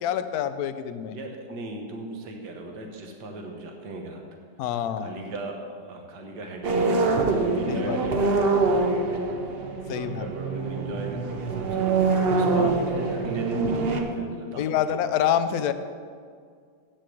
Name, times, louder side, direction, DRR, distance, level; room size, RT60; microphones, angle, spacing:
voice 1, 0.0-1.2 4.6-5.2 7.7-8.0 9.9-10.3 12.5-12.7 14.6-15.7, left 9 dB, 70° left, 11 dB, 1.0 m, -26 dB
voice 2, 1.1-4.2 5.0-9.5 9.8-15.0, right 2 dB, 70° right, 2 dB, 1.8 m, -36 dB
sound 1, 6.6-14.0, right 3 dB, 50° right, 0.7 m, -25 dB
8.2 x 6.6 x 7.7 m, 2.1 s
omnidirectional pair, 1.9 m